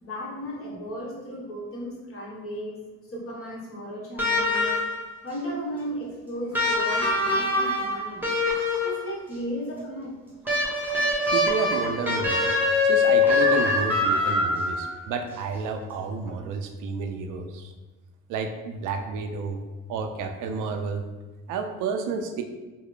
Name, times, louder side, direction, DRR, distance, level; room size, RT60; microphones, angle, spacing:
voice 1, 0.0-2.8 3.1-4.7 5.2-8.3 8.8-10.1, equal, 45° left, -4 dB, 1.1 m, -35 dB
sound 1, 4.2-5.1 6.5-9.1 10.5-14.9 16.3-16.4, left 2 dB, 5° right, 1.0 m, -23 dB
voice 2, 11.3-12.5 12.8-17.7 18.3-19.6 19.9-21.0 21.5-22.4, right 5 dB, 85° right, 6 dB, 0.5 m, -31 dB
3.3 x 2.1 x 3.6 m, 1.2 s
cardioid pair, 90°, 30 cm